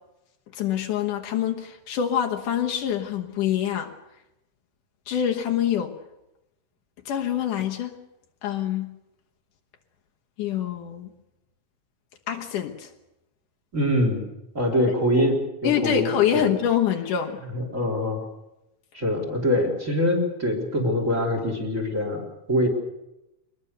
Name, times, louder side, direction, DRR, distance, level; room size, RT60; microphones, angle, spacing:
voice 1, 0.5-3.9 5.1-5.9 7.1-7.9 8.4-8.9 10.4-11.1 12.3-12.9 15.6-17.4, left 9 dB, 70° left, 3 dB, 2.7 m, -25 dB
voice 2, 13.7-14.2 14.5-15.4 15.6-16.5 17.5-18.2 18.9-22.2 22.5-22.7, left 1 dB, 20° right, 2 dB, 4.0 m, -24 dB
23.5 x 20.5 x 6.8 m, 0.92 s
omnidirectional pair, 3.9 m